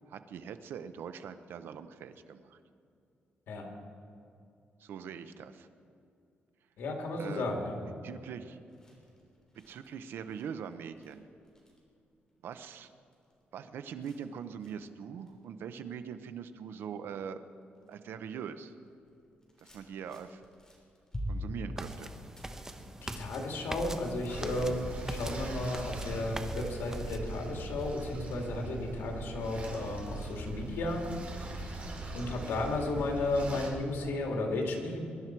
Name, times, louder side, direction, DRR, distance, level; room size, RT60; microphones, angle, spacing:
voice 1, 0.1-2.6 4.8-5.7 7.2-7.4 8.0-8.6 9.7-11.2 12.4-12.9 13.5-17.4 17.9-18.7 19.6-20.4 21.3-22.1, right 7 dB, 85° right, 11 dB, 0.8 m, -42 dB
voice 2, 6.8-7.8 23.0-31.0 31.5-31.8 32.1-35.0, left 2 dB, 90° left, 1 dB, 2.6 m, -34 dB
sound 1, 8.6-16.8 17.2-18.0 18.3-28.0, equal, 15° left, 3.4 m, -48 dB
sound 2, 21.8-27.2, right 1 dB, 15° right, 0.9 m, -42 dB
sound 3, 24.3-33.7, right 2 dB, 40° right, 3.4 m, -40 dB
22.5 x 11.5 x 4.6 m, 2.6 s
cardioid pair, 125°, 4 cm